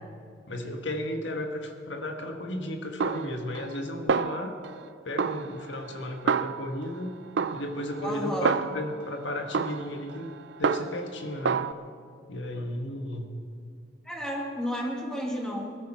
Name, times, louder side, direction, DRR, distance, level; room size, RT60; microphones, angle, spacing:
voice 1, 0.5-4.5 5.0-7.2 7.5-10.3 10.6-11.6 12.3-13.3, left 1 dB, 80° left, 3 dB, 1.6 m, -34 dB
Snare drum, 3.0-3.8 4.1-4.9 5.2-7.0 7.4-9.0 9.5-11.1 11.5-11.7, right 5 dB, 70° right, 0.4 m, -29 dB
voice 2, 8.0-8.5 14.0-15.8, equal, 5° left, -2 dB, 2.3 m, -32 dB
20.5 x 13.5 x 4.3 m, 2.2 s
head